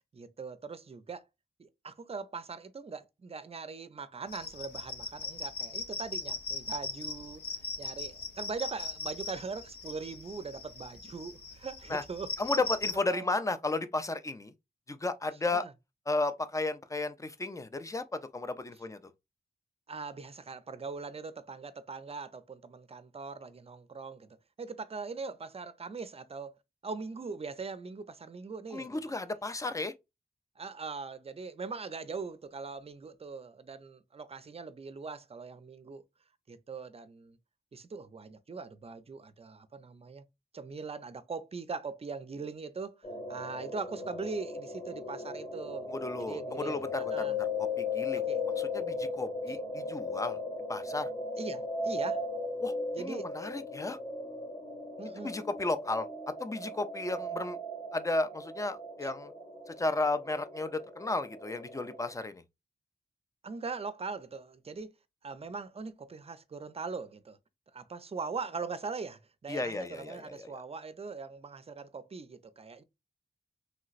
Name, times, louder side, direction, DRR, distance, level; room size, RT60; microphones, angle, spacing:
voice 1, 0.1-1.3 1.6-12.6 12.9-13.3 15.5-15.7 19.9-26.5 26.8-29.2 30.6-36.0 36.5-37.4 37.7-40.2 40.5-45.9 46.2-47.4 48.1-48.4 51.4-52.2 52.9-53.3 55.0-55.3 59.0-59.1 63.4-64.9 65.2-67.4 67.7-72.8, right 4 dB, 40° right, 0.5 m, -41 dB
sound 1, 4.3-13.0, left 3 dB, 85° left, 0.8 m, -39 dB
voice 2, 12.4-14.5 14.9-15.7 16.1-19.0 28.7-29.9 45.9-47.4 47.8-48.2 48.6-50.4 50.7-51.1 52.6-54.0 55.2-56.1 56.4-57.6 57.9-59.3 59.7-62.4 69.5-70.6, left 2 dB, 20° left, 0.4 m, -33 dB
sound 2, 43.0-62.1, left 3 dB, 45° left, 1.2 m, -37 dB
3.2 x 2.9 x 2.4 m
cardioid pair, 60°, 16 cm